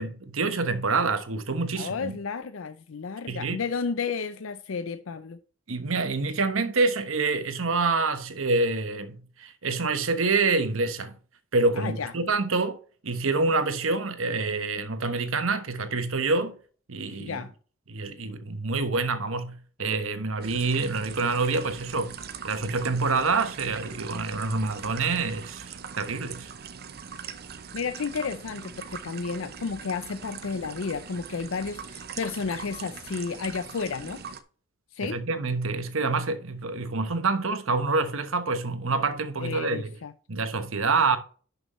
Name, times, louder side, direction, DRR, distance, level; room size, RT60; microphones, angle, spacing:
voice 1, 0.0-2.2 3.3-3.6 5.7-11.2 11.5-12.8 13.0-16.6 16.9-17.4 17.9-22.2 22.4-26.5 35.0-39.9 40.3-41.2, right 3 dB, 70° right, 1.1 m, -27 dB
voice 2, 1.8-5.4 11.8-12.1 17.2-17.5 27.7-34.2 34.9-35.2 39.4-40.1, left 5 dB, 65° left, 0.5 m, -32 dB
sound 1, 20.4-34.4, right 6 dB, 50° right, 0.7 m, -41 dB
11.0 x 6.2 x 3.1 m
head